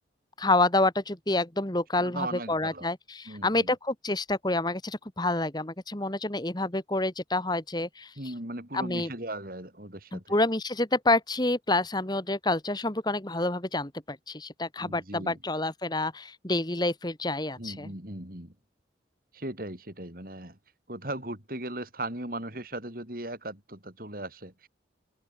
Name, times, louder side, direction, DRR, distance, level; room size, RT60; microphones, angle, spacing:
voice 1, 0.4-8.1 8.7-9.1 10.1-17.9, left 2 dB, 20° left, 1.7 m, -28 dB
voice 2, 1.9-2.9 3.3-3.7 8.2-10.4 14.8-15.4 17.6-18.5 19.3-20.6 20.9-24.7, right 1 dB, 50° right, 4.9 m, -38 dB
head